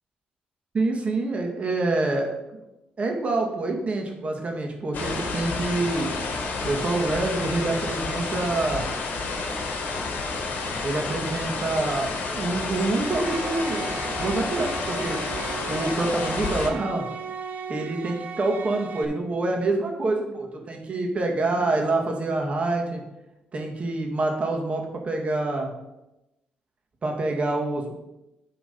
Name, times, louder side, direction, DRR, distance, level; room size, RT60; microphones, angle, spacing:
voice 1, 0.7-2.6 3.0-6.1 6.6-8.9 10.8-13.9 14.2-15.2 15.6-17.1 17.7-23.0 23.5-25.7 27.0-27.9, right 2 dB, 40° right, 1 dB, 1.9 m, -26 dB
sound 1, 4.9-16.7, left 3 dB, 65° left, 1.7 m, -30 dB
sound 2, 13.0-19.1, right 5 dB, 60° right, 1.0 m, -36 dB
10.5 x 3.9 x 5.2 m, 0.94 s
cardioid pair, 90°, 3 cm